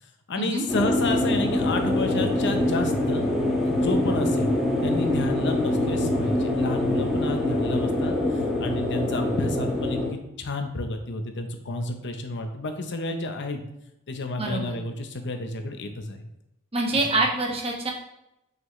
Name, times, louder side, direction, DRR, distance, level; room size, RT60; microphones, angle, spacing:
voice 1, 0.3-3.3 3.5-4.5 4.8-8.1 8.6-13.6 14.1-16.2 16.9-17.0, left 2 dB, 55° left, 5 dB, 0.8 m, -30 dB
sound 1, 0.7-10.1, left 1 dB, ahead, 1.4 m, -24 dB
voice 2, 14.4-14.8 16.7-17.9, right 2 dB, 25° right, 0 dB, 1.1 m, -25 dB
5.7 x 5.7 x 3.1 m, 0.85 s
head